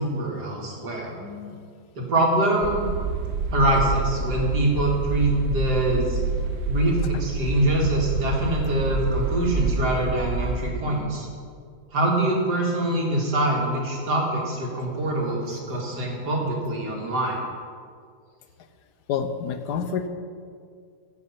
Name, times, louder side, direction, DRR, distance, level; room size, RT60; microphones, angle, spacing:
voice 1, 0.0-1.1 2.0-2.9 3.5-6.2 6.7-11.3 11.9-17.4, right 1 dB, 85° right, -2 dB, 2.7 m, -24 dB
voice 2, 1.1-1.6 19.1-20.1, left 7 dB, 90° left, 9 dB, 1.4 m, -29 dB
sound 1, 2.6-10.7, right 4 dB, 70° right, 1.3 m, -27 dB
14.5 x 6.5 x 5.7 m, 2.1 s
omnidirectional pair, 1.7 m